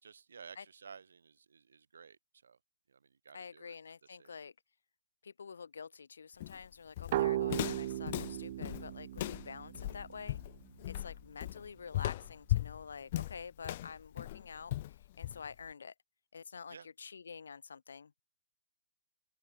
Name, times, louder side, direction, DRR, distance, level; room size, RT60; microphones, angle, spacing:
voice 1, 0.0-2.6 2.9-4.3 16.7-16.9, right 6 dB, 80° right, 4.4 m, -54 dB
voice 2, 3.3-4.5 5.2-10.4 10.9-15.9 16.3-18.3, left 6 dB, 85° left, 1.2 m, -48 dB
Walk footsteps, 6.4-15.7, left 15 dB, 40° left, 1.0 m, -38 dB
sound 1, 7.1-10.6, right 14 dB, 45° right, 0.5 m, -37 dB
open air
hypercardioid pair, 155°, 0 cm